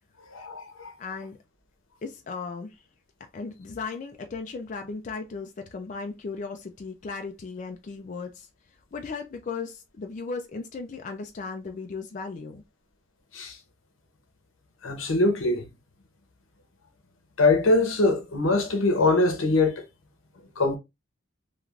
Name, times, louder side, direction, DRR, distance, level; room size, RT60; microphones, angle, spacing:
voice 1, 0.3-0.9 13.3-13.6 14.8-15.6 17.4-19.8 20.6-20.8, left 2 dB, 85° left, 0.8 m, -23 dB
voice 2, 1.0-1.4 2.0-2.8 3.3-8.5 8.9-12.6, left 4 dB, 40° left, 0.3 m, -36 dB
3.2 x 2.4 x 2.3 m
head